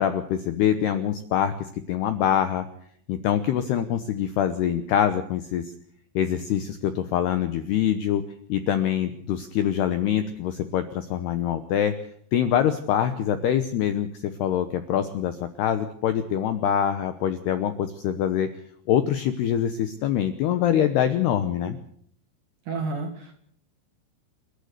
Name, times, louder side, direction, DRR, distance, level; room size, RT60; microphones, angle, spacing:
voice 1, 0.0-1.5 1.9-2.6 3.1-5.6 6.2-8.2 8.5-11.9 12.3-18.5 18.9-21.8, left 10 dB, 75° left, 10 dB, 2.4 m, -24 dB
voice 2, 22.7-23.3, right 3 dB, 55° right, 5 dB, 2.4 m, -30 dB
29.0 x 12.0 x 8.0 m, 0.63 s
omnidirectional pair, 6.0 m